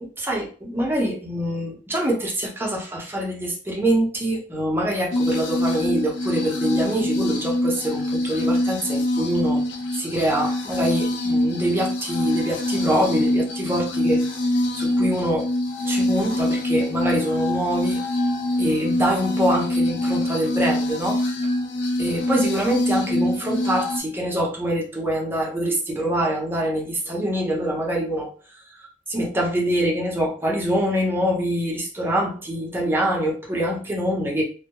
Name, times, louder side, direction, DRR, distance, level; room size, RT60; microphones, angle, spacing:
voice 1, 0.0-9.6 9.9-14.2 14.8-15.5 15.9-18.0 18.6-21.2 22.0-28.3 28.7-34.4, equal, 10° right, -2 dB, 0.6 m, -25 dB
sound 1, 5.1-24.0, left 1 dB, 80° left, 0.5 m, -24 dB
2.2 x 2.0 x 2.8 m, 0.37 s
head